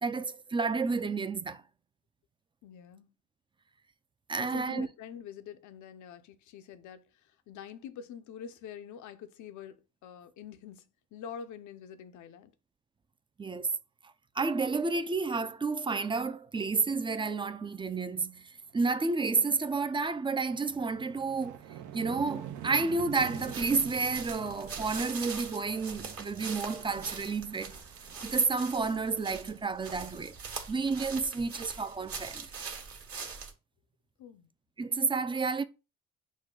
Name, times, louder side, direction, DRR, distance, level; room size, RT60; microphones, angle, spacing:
voice 1, 0.0-1.6 4.3-4.9 13.4-13.7 14.4-21.6 21.9-27.8 28.2-30.3 30.7-32.5 34.8-35.6, right 4 dB, 15° right, 0.4 m, -30 dB
voice 2, 2.6-3.1 4.4-12.5 34.2-34.5, left 8 dB, 75° left, 0.6 m, -46 dB
sound 1, 18.7-18.9 19.3-30.1, right 10 dB, 80° right, 0.7 m, -47 dB
sound 2, 23.1-33.5, right 5 dB, 50° right, 1.2 m, -42 dB
6.2 x 2.2 x 3.7 m
cardioid pair, 90°, 30 cm